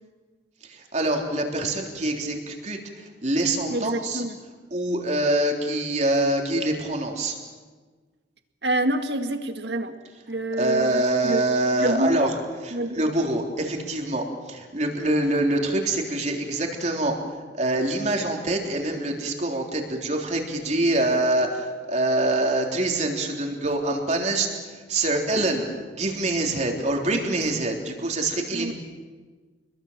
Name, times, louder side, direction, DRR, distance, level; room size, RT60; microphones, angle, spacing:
voice 1, 0.6-4.2 4.7-7.4 10.6-12.3 12.6-25.7 26.0-28.7, right 2 dB, 40° right, 1 dB, 3.6 m, -25 dB
voice 2, 3.7-4.4 8.6-10.0 10.3-11.5 11.8-12.3 12.7-13.1 28.5-28.7, right 1 dB, 65° right, 7 dB, 1.9 m, -27 dB
28.0 x 22.0 x 7.5 m, 1.4 s
head